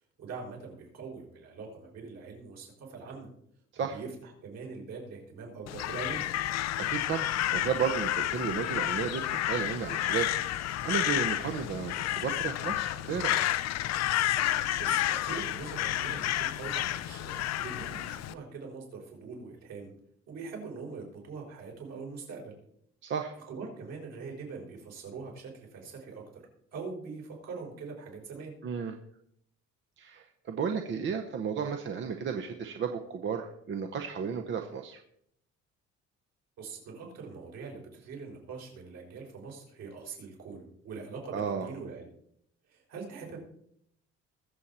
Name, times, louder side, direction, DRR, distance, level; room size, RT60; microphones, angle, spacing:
voice 1, 0.2-3.3 3.8-6.2 14.8-19.9 20.3-22.5 23.5-26.4 26.7-28.5 36.6-42.1 42.7-43.4, right 4 dB, 65° right, -1 dB, 5.3 m, -43 dB
Crow, 5.7-18.3, left 13 dB, 65° left, 0.6 m, -30 dB
voice 2, 6.8-10.3 10.8-13.5 23.0-23.4 28.6-28.9 30.0-35.0 41.3-41.7, right 7 dB, 40° right, 5 dB, 0.8 m, -33 dB
21.0 x 7.5 x 4.3 m, 0.71 s
cardioid pair, 170°, 29 cm